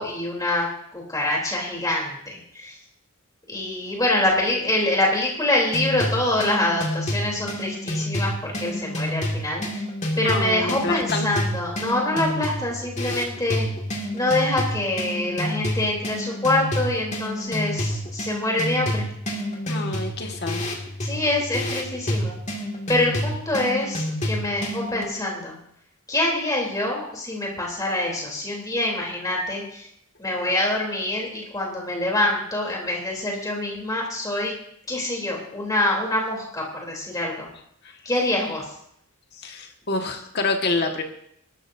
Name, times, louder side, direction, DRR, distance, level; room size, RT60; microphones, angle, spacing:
voice 1, 0.0-2.8 3.5-9.8 10.2-13.7 14.1-19.1 21.0-22.4 22.9-25.5 26.1-29.9 30.2-34.5 34.9-37.5 38.0-38.7, left 1 dB, 15° left, -2 dB, 3.4 m, -25 dB
sound 1, 5.7-25.0, left 1 dB, 30° left, 2.2 m, -28 dB
voice 2, 10.2-11.3 19.7-20.6 39.4-41.0, left 3 dB, 50° left, 3 dB, 1.7 m, -27 dB
22.0 x 12.5 x 2.7 m, 0.72 s
head